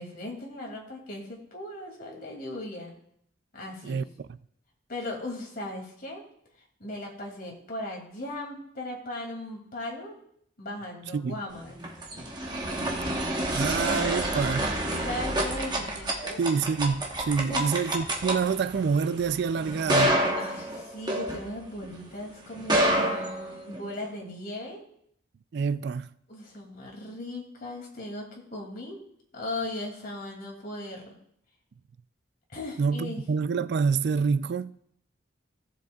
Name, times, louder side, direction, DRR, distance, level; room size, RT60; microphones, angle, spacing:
voice 1, 0.0-2.9 3.5-4.1 4.9-6.2 6.8-10.2 10.6-11.8 14.9-16.4 17.5-17.8 20.3-24.8 26.3-29.0 29.3-31.2 32.5-33.2, left 1 dB, 50° left, 2.5 m, -38 dB
sound 1, 11.6-21.9 22.5-24.0, right 1 dB, 20° right, 1.1 m, -28 dB
voice 2, 13.5-14.7 16.4-20.2 25.5-26.1 32.8-34.8, right 5 dB, 60° right, 0.3 m, -27 dB
16.5 x 7.6 x 2.3 m
head